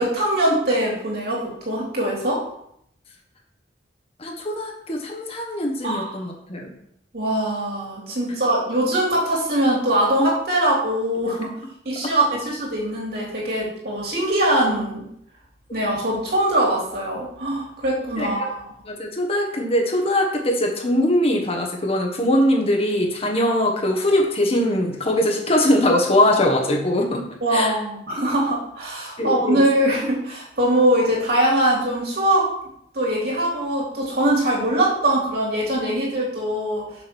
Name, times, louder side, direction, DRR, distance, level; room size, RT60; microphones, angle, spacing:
voice 1, 0.0-2.4 5.8-6.2 7.1-11.5 11.8-15.0 15.7-18.7 27.4-32.5 32.9-36.9, right 1 dB, 60° right, -4 dB, 3.7 m, -22 dB
voice 2, 4.2-6.7 18.2-18.3 18.9-27.7 29.2-29.6, left 1 dB, 35° left, 2 dB, 1.4 m, -21 dB
7.2 x 6.4 x 6.2 m, 0.73 s
head